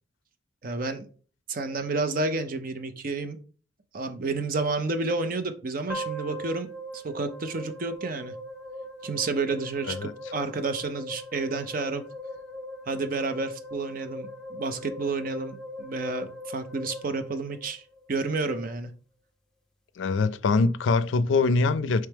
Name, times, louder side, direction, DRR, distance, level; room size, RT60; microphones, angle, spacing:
voice 1, 0.6-1.1 1.5-3.4 3.9-8.3 9.0-12.0 12.9-17.8 18.1-18.9, right 3 dB, 50° right, 0.6 m, -30 dB
sound 1, 5.9-18.1, equal, 5° left, 0.6 m, -40 dB
voice 2, 20.0-22.1, left 3 dB, 80° left, 0.4 m, -23 dB
4.5 x 3.2 x 3.4 m
head